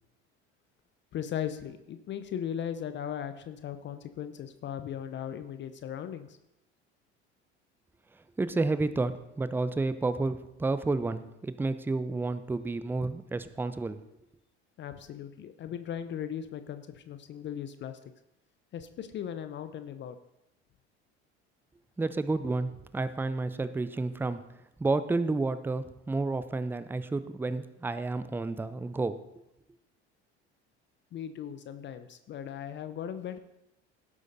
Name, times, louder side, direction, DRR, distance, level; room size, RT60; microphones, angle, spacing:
voice 1, 1.1-6.4 14.8-18.0 18.7-20.2 31.1-33.4, left 9 dB, 35° left, 10 dB, 0.6 m, -38 dB
voice 2, 8.4-14.0 22.0-24.4 24.8-29.2, right 3 dB, 5° right, 13 dB, 0.5 m, -30 dB
17.0 x 8.4 x 2.7 m, 0.88 s
figure-of-eight pair, 65°, 34 cm